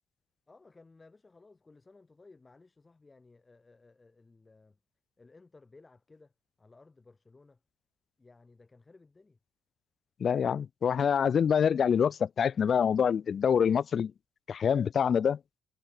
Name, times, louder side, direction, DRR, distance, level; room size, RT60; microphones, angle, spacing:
voice 1, 0.5-4.8 5.2-6.3 6.6-7.6 8.2-9.4, left 3 dB, 15° left, 7.0 m, -58 dB
voice 2, 10.2-14.1 14.5-15.4, left 7 dB, 40° left, 0.6 m, -26 dB
cardioid pair, 150°, 0 cm